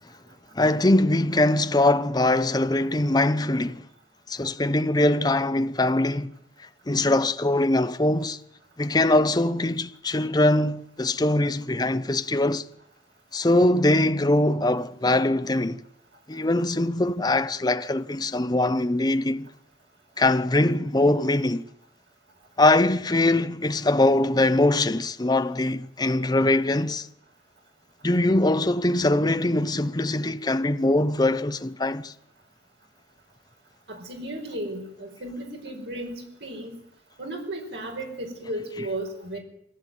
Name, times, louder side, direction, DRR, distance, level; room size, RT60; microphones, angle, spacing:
voice 1, 0.5-3.8 4.3-6.3 6.9-8.4 8.8-12.7 13.3-15.8 16.3-19.5 20.2-21.7 22.6-27.1 28.0-32.1 38.8-38.9, left 2 dB, 25° left, 0.8 m, -22 dB
voice 2, 33.9-36.8 37.2-39.4, right 1 dB, 75° right, 4.8 m, -34 dB
22.5 x 16.0 x 9.1 m
head